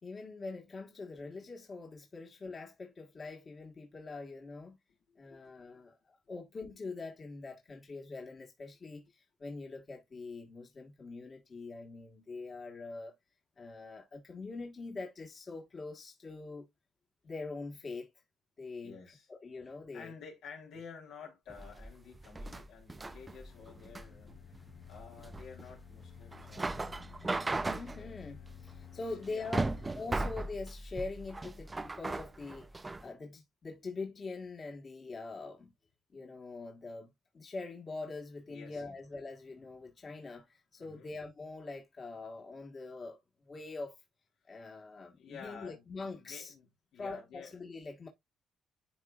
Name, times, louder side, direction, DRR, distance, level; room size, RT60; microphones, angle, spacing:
voice 1, 0.0-4.8 5.2-13.1 13.6-16.7 17.2-18.1 18.6-19.0 19.3-20.1 27.6-35.7 36.1-44.0 44.5-46.5 46.9-48.1, left 3 dB, 40° left, 1.7 m, -44 dB
voice 2, 5.1-5.4 18.8-19.3 19.9-27.3 27.9-28.2 28.9-29.6 38.5-39.0 40.8-41.1 45.1-47.5, left 6 dB, 85° left, 3.2 m, -52 dB
sound 1, 21.5-33.1, right 2 dB, 20° right, 0.5 m, -38 dB
sound 2, 23.2-30.0, left 10 dB, 60° left, 0.8 m, -54 dB
11.0 x 3.8 x 2.5 m
cardioid pair, 90°, 0 cm